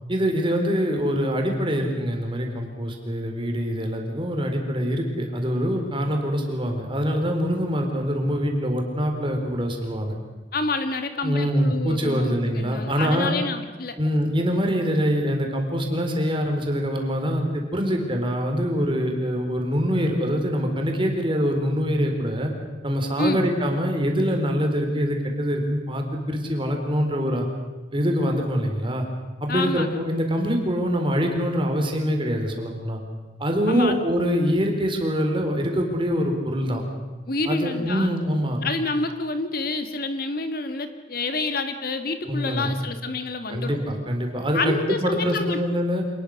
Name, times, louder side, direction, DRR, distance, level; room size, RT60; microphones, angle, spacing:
voice 1, 0.1-10.2 11.2-13.4 14.0-22.5 22.8-27.5 27.9-29.1 29.4-33.0 33.4-36.8 37.5-38.6 42.3-42.7 43.5-46.0, equal, 30° right, 3 dB, 4.0 m, -24 dB
voice 2, 10.5-14.0 23.2-23.4 29.5-30.3 33.7-34.0 37.3-38.1 38.6-43.8 44.5-45.6, left 3 dB, 55° left, 8 dB, 1.8 m, -28 dB
26.5 x 20.0 x 6.5 m, 1.3 s
head